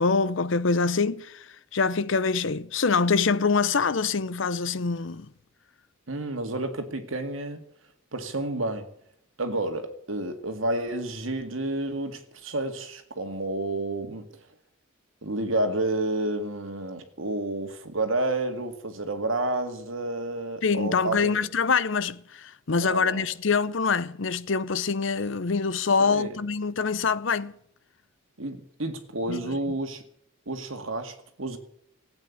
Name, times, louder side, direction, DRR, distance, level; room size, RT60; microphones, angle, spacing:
voice 1, 0.0-5.3 20.6-27.5 29.3-29.4, left 4 dB, 65° left, 0.7 m, -25 dB
voice 2, 6.1-7.6 8.1-8.9 9.4-14.3 15.2-21.4 22.8-23.2 26.0-26.4 28.4-30.0 30.5-31.6, right 2 dB, 70° right, 2.1 m, -30 dB
15.5 x 9.0 x 9.9 m
head